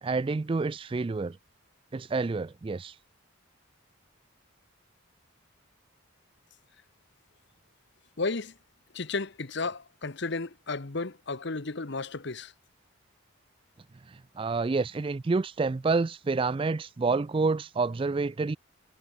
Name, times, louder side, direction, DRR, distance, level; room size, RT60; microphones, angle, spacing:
voice 1, 0.0-1.4 1.9-2.9 14.1-18.6, right 4 dB, 25° right, 0.3 m, -28 dB
voice 2, 8.2-8.6 8.9-12.5, left 3 dB, 55° left, 1.1 m, -33 dB
head